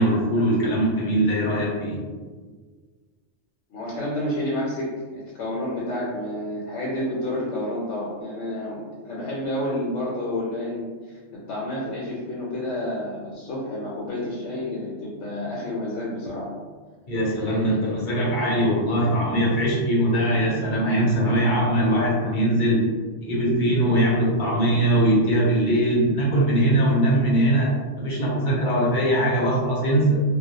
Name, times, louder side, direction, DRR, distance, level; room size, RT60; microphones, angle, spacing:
voice 1, 0.0-2.0 17.1-22.9 23.2-27.7 28.0-30.2, right 1 dB, 50° left, -5 dB, 0.7 m, -21 dB
voice 2, 3.7-4.9 5.4-11.2 11.5-16.5 17.4-17.7 18.4-18.5, left 1 dB, 75° left, -6 dB, 0.9 m, -29 dB
2.2 x 2.1 x 2.7 m, 1.5 s
omnidirectional pair, 1.3 m